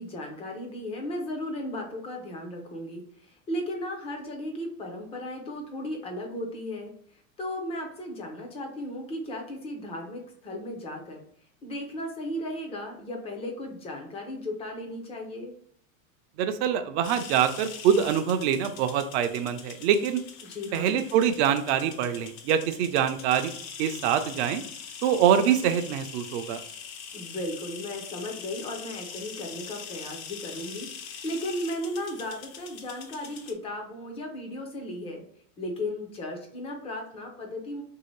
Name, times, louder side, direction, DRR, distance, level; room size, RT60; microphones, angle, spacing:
voice 1, 0.0-6.9 7.4-11.2 11.6-15.5 20.4-21.0 27.1-35.2 35.6-37.8, left 1 dB, 15° left, 2 dB, 0.4 m, -35 dB
voice 2, 16.4-20.2 20.7-23.5 23.8-24.6 25.0-26.6, right 8 dB, 50° right, 9 dB, 0.5 m, -24 dB
sound 1, 17.0-33.5, left 7 dB, 70° left, 0.8 m, -43 dB
2.8 x 2.7 x 3.0 m, 0.64 s
supercardioid pair, 145°, 43 cm